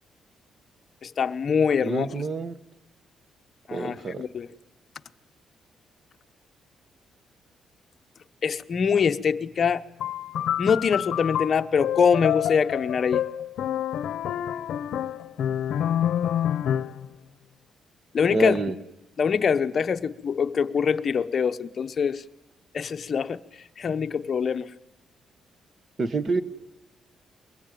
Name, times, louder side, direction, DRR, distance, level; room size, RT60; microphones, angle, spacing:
voice 1, 1.0-2.1 3.7-4.5 8.4-9.8 10.6-13.2 18.1-18.6 19.2-22.2 22.7-23.4 23.8-24.7, left 6 dB, 40° left, 0.9 m, -24 dB
voice 2, 1.8-2.5 3.7-4.2 18.3-18.7 26.0-26.4, right 3 dB, 35° right, 1.3 m, -27 dB
sound 1, 10.0-17.1, left 10 dB, 70° left, 0.8 m, -28 dB
23.5 x 21.5 x 9.2 m
cardioid pair, 160°, 0 cm